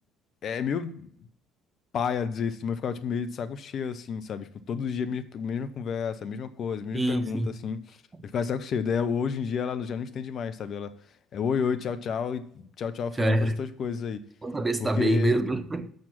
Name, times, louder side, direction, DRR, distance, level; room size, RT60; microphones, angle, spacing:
voice 1, 0.4-1.1 1.9-8.0 8.2-10.9 11.3-14.2 14.8-15.3, left 6 dB, 50° left, 0.7 m, -31 dB
voice 2, 6.9-7.6 13.2-13.6 14.4-15.9, right 1 dB, 20° right, 0.8 m, -25 dB
6.4 x 5.9 x 7.3 m
hypercardioid pair, 50°, 0 cm